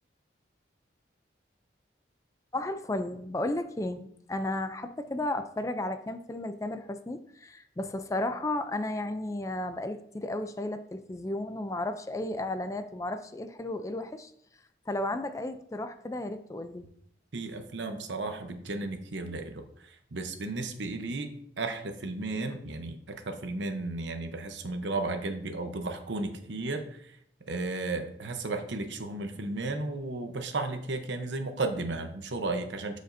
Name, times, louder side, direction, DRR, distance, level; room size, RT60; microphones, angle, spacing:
voice 1, 2.5-14.3 14.9-16.9, left 1 dB, 15° left, 9 dB, 0.4 m, -33 dB
voice 2, 17.3-19.6 20.1-21.3 21.6-27.0 27.5-33.0, right 2 dB, 80° right, 7 dB, 0.9 m, -34 dB
11.0 x 5.1 x 2.7 m, 0.69 s
head